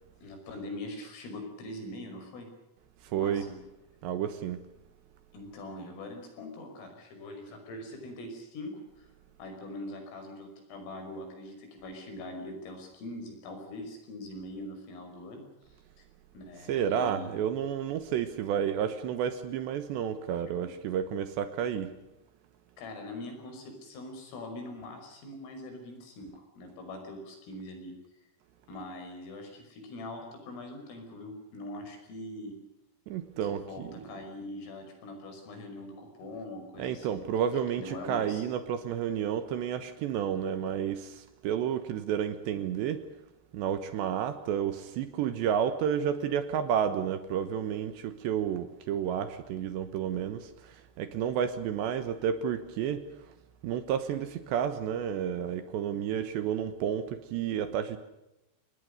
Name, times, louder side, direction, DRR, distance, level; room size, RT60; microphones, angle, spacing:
voice 1, 0.2-2.5 3.1-3.6 5.3-9.1 9.4-16.0 16.3-17.4 20.6-20.7 22.8-27.9 28.7-32.5 33.4-37.3 37.8-38.4, left 1 dB, 75° left, 8.2 m, -43 dB
voice 2, 3.0-3.5 4.0-4.6 16.7-22.0 33.1-34.0 36.8-43.0 43.5-53.1 53.6-58.0, right 9 dB, 70° right, 3.0 m, -31 dB
28.0 x 20.5 x 6.7 m
omnidirectional pair, 5.9 m